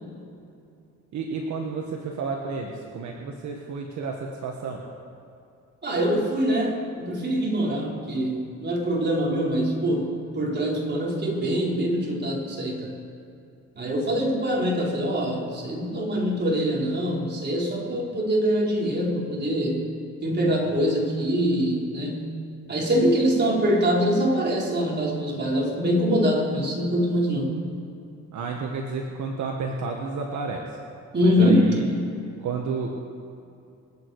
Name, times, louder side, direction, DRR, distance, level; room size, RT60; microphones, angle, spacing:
voice 1, 1.1-4.8 28.3-30.7 31.2-31.9 32.4-32.9, right 4 dB, 70° right, 1 dB, 1.6 m, -31 dB
voice 2, 5.8-10.1 10.3-12.9 13.8-19.8 20.2-22.3 22.7-27.5 31.1-31.7, equal, 35° right, -3 dB, 4.0 m, -24 dB
26.5 x 8.9 x 4.8 m, 2.6 s
cardioid pair, 90°, 30 cm